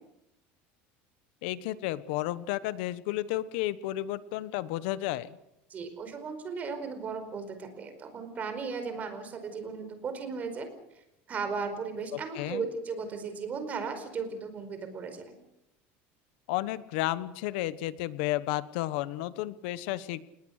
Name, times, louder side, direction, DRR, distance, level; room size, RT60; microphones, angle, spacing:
voice 1, 1.4-5.4 12.1-12.7 16.5-20.2, left 15 dB, 75° left, 16 dB, 1.1 m, -32 dB
voice 2, 5.7-10.7 11.3-15.4, right 5 dB, 30° right, 8 dB, 4.7 m, -36 dB
29.5 x 19.0 x 6.6 m, 0.83 s
cardioid pair, 155°, 6 cm